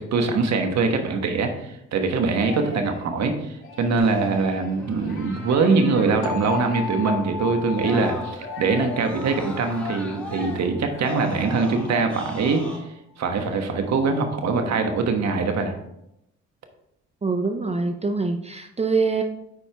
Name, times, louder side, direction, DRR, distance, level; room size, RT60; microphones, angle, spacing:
voice 1, 0.0-12.6 13.2-15.7, right 4 dB, 60° right, 5 dB, 1.3 m, -23 dB
sound 1, 2.5-3.1 3.6-7.1 7.8-11.2, left 4 dB, 40° left, 2.5 m, -40 dB
Screaming, 4.0-8.6 8.9-12.8, left 1 dB, 5° left, 1.8 m, -41 dB
sound 2, 6.2-12.1, left 5 dB, 75° left, 0.8 m, -35 dB
voice 2, 17.2-19.2, right 4 dB, 20° right, 5 dB, 0.6 m, -24 dB
9.4 x 4.5 x 3.4 m, 0.81 s
cardioid pair, 90°, 30 cm